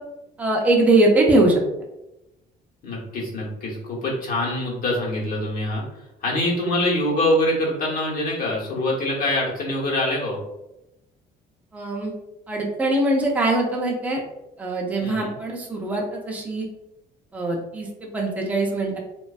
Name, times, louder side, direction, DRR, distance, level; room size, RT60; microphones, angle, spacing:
voice 1, 0.4-1.6 11.7-12.1 12.5-14.2 14.6-16.7 17.3-17.9 18.1-19.0, right 2 dB, 10° right, -1 dB, 0.4 m, -21 dB
voice 2, 2.8-5.8 6.2-10.4 15.0-15.3, left 1 dB, 60° left, -4 dB, 0.9 m, -24 dB
2.4 x 2.2 x 2.3 m, 0.92 s
cardioid pair, 110°, 17 cm